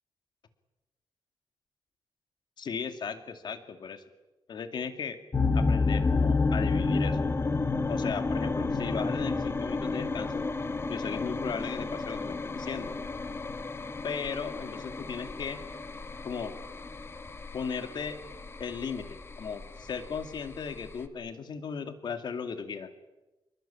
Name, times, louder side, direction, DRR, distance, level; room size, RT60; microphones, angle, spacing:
voice 1, 2.6-4.0 4.5-5.2 5.5-7.2 7.9-10.5 10.9-12.9 14.0-15.6 16.2-16.5 17.5-18.2 18.6-22.9, left 6 dB, 55° left, 8 dB, 2.4 m, -36 dB
sound 1, 5.3-21.1, left 3 dB, 30° left, 1.6 m, -31 dB
26.5 x 23.0 x 8.7 m, 1.1 s
wide cardioid pair, 155°, 9 cm